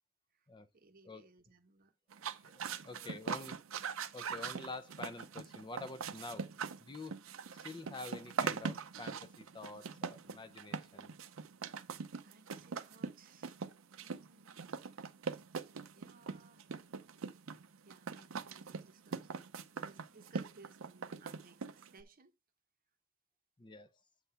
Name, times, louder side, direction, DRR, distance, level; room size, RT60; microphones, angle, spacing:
voice 1, 0.7-2.3 2.7-3.5 12.2-13.6 14.0-14.7 15.9-16.6 17.8-19.5 19.8-22.3, right 4 dB, 45° right, 0.9 m, -62 dB
sound 1, 2.1-22.0, right 5 dB, 70° right, 0.6 m, -42 dB
voice 2, 2.4-3.5 4.1-6.5 6.8-7.2 7.5-11.1 23.6-23.9, left 3 dB, 20° left, 0.6 m, -48 dB
8.1 x 3.7 x 5.5 m
head